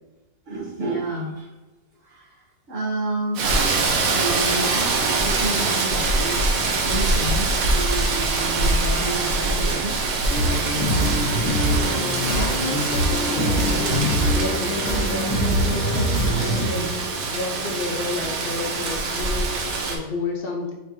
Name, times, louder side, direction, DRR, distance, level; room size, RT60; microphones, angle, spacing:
voice 1, 0.5-1.5 2.0-2.3 2.7-3.5 4.1-10.0 16.7-16.9, right 2 dB, 50° right, -13 dB, 1.8 m, -30 dB
Rain, 3.4-20.0, right 3 dB, 65° right, 1.1 m, -24 dB
sound 1, 10.3-16.6, equal, 25° left, 1.3 m, -23 dB
voice 2, 11.3-17.0 17.3-20.7, left 3 dB, 55° left, 0 dB, 0.6 m, -31 dB
5.1 x 3.5 x 2.7 m, 1.1 s
omnidirectional pair, 1.7 m